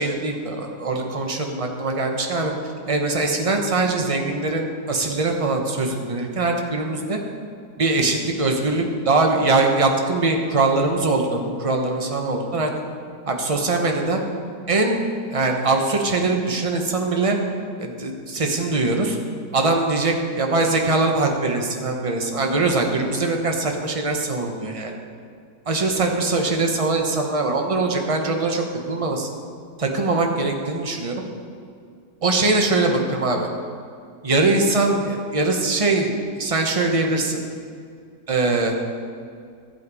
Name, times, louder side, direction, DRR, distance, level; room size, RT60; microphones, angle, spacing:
voice 1, 0.0-2.5 2.9-7.2 7.8-12.7 13.3-14.2 14.7-15.0 15.3-17.4 17.8-19.2 19.5-24.9 25.7-29.3 29.8-31.2 32.2-33.5 34.2-37.4 38.3-38.7, right 3 dB, 25° right, 2 dB, 0.9 m, -22 dB
15.0 x 8.0 x 4.9 m, 2.2 s
omnidirectional pair, 1.9 m